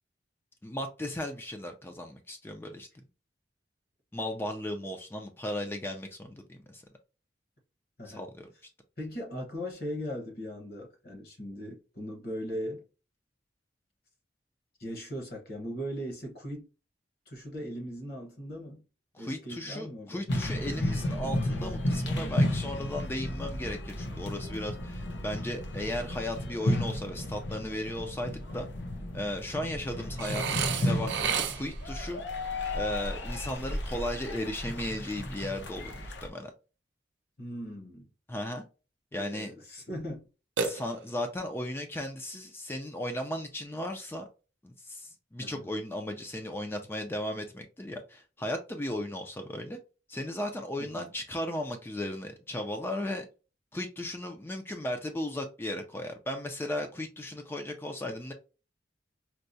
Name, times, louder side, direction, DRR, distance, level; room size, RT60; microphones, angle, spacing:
voice 1, 0.6-2.9 4.1-6.8 8.1-8.5 19.1-28.7 29.1-32.2 32.7-36.5 38.3-38.6 39.1-39.5 40.6-44.3 44.6-49.8 50.1-53.2 53.7-58.3, left 1 dB, 10° left, 0.3 m, -36 dB
voice 2, 9.0-12.8 14.8-16.7 17.3-18.8 19.2-20.3 37.4-38.1 39.1-40.2 45.4-45.7 50.8-51.1, equal, 55° left, 1.1 m, -39 dB
sound 1, 20.3-36.3, left 1 dB, 80° left, 0.7 m, -33 dB
Burping eructation, 30.2-31.9 40.6-41.3, right 6 dB, 75° right, 0.5 m, -32 dB
4.5 x 2.0 x 2.6 m
head